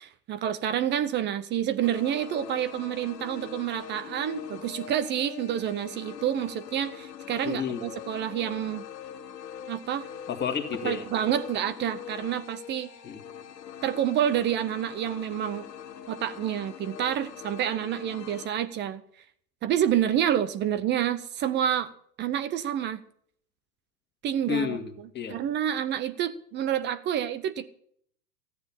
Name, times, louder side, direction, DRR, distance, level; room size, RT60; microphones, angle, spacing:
voice 1, 0.0-8.8 9.7-10.1 10.8-12.9 13.8-15.7 16.1-19.0 19.6-21.9 22.2-23.0 24.2-24.8 25.3-27.7, right 10 dB, 20° right, 0.6 m, -28 dB
sound 1, 1.8-18.5, left 9 dB, 75° left, 1.6 m, -43 dB
voice 2, 7.4-7.8 10.3-11.0 13.0-13.2 24.5-25.4, left 7 dB, 20° left, 1.9 m, -31 dB
14.5 x 9.4 x 7.2 m
hypercardioid pair, 110°, 49 cm